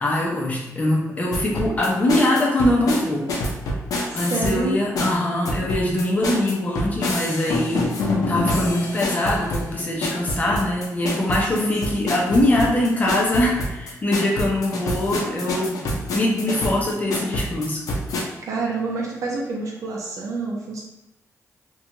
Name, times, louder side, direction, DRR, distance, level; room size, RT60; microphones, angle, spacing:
voice 1, 0.0-3.3 4.1-15.8 16.1-17.8, left 1 dB, 25° left, -2 dB, 0.6 m, -22 dB
sound 1, 1.3-4.6 4.9-18.2, left 1 dB, 90° left, 0.5 m, -27 dB
voice 2, 4.3-4.7 11.5-11.7 18.4-20.8, right 3 dB, 70° right, -2 dB, 0.5 m, -27 dB
2.5 x 2.3 x 2.9 m, 0.96 s
wide cardioid pair, 145°, 6 cm